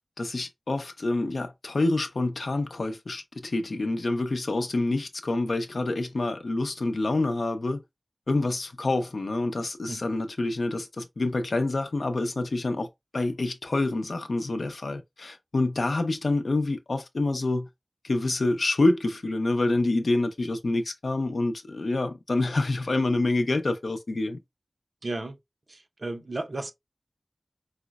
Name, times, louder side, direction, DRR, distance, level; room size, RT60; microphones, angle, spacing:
voice 1, 0.2-7.8 8.3-12.9 13.1-17.7 18.0-24.4, left 2 dB, 75° left, 0.5 m, -27 dB
voice 2, 25.0-25.4 25.7-26.7, right 2 dB, 60° right, 0.5 m, -34 dB
4.8 x 2.0 x 2.3 m
wide cardioid pair, 65°, 0 cm